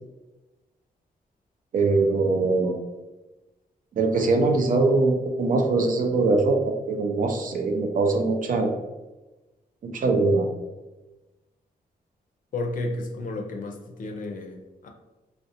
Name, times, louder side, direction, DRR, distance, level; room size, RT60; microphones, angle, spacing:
voice 1, 1.7-2.8 4.0-8.7 9.8-10.5, right 3 dB, 60° right, 4 dB, 0.4 m, -22 dB
voice 2, 12.5-14.9, left 2 dB, 60° left, 3 dB, 0.4 m, -32 dB
2.4 x 2.0 x 2.7 m, 1.1 s
cardioid pair, 80°, 16 cm